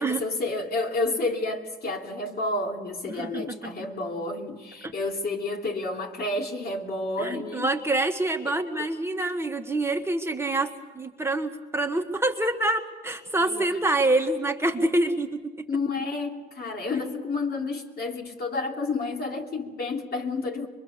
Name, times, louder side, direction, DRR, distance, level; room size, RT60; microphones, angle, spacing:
voice 1, 0.0-7.7 8.4-8.6 13.4-13.6 15.7-20.7, left 3 dB, 50° left, 1 dB, 3.1 m, -30 dB
voice 2, 3.1-3.7 4.8-4.9 7.2-15.4, right 2 dB, 10° right, 4 dB, 1.5 m, -26 dB
23.5 x 23.0 x 6.9 m, 1.3 s
cardioid pair, 90°, 20 cm